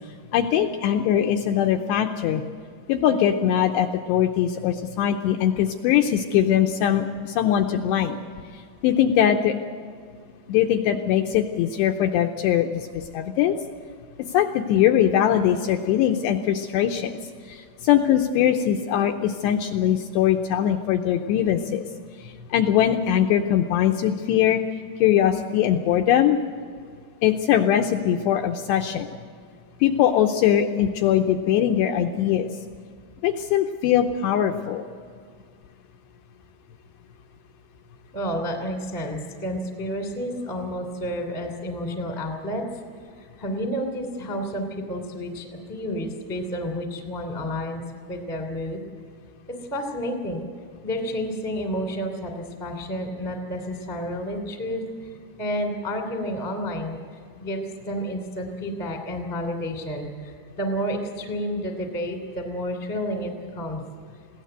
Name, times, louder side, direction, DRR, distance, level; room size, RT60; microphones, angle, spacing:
voice 1, 0.3-2.4 2.9-8.2 8.5-9.6 10.5-13.6 14.2-17.2 17.5-21.8 22.2-24.6 25.0-26.4 27.2-29.1 29.8-32.5 33.2-34.8, left 10 dB, 85° left, 4 dB, 2.5 m, -21 dB
voice 2, 38.1-42.6 43.0-47.8 48.1-48.8 49.5-50.4 50.8-55.1 55.4-63.8, equal, 10° left, 4 dB, 0.8 m, -30 dB
21.5 x 16.5 x 8.0 m, 2.1 s
omnidirectional pair, 5.6 m